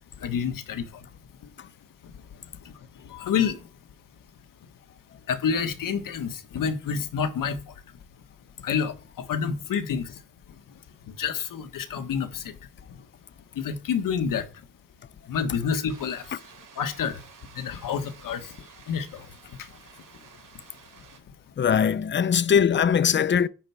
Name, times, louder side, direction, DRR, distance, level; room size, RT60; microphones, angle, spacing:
voice 1, 0.2-0.9 2.6-2.7 3.1-3.6 5.3-7.6 8.6-10.1 11.2-12.5 13.5-14.4 15.3-16.3 16.8-17.2 17.5-18.5 18.9-19.2, left 7 dB, 85° left, 1.6 m, -28 dB
sound 1, 15.9-21.2, right 6 dB, 75° right, 3.8 m, -52 dB
voice 2, 21.6-23.5, left 7 dB, 35° left, 0.5 m, -21 dB
10.5 x 4.6 x 7.0 m
wide cardioid pair, 130°, 32 cm